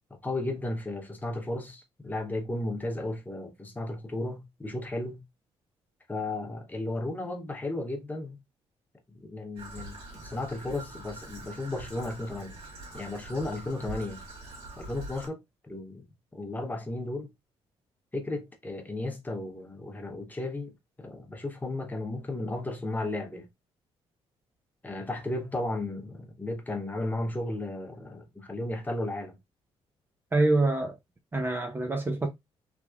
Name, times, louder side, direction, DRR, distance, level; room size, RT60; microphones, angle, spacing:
voice 1, 0.1-5.2 6.1-8.4 9.1-12.6 12.9-14.2 14.8-16.1 16.3-17.3 18.1-20.7 21.0-23.5 24.8-29.4, left 2 dB, 15° left, 1.0 m, -34 dB
Traffic noise roadway noise / Trickle dribble, 9.6-15.3, right 2 dB, 60° right, 1.9 m, -44 dB
voice 2, 30.3-31.0 31.3-32.3, right 2 dB, 20° right, 0.6 m, -25 dB
3.4 x 2.9 x 2.4 m
cardioid pair, 105°, 11 cm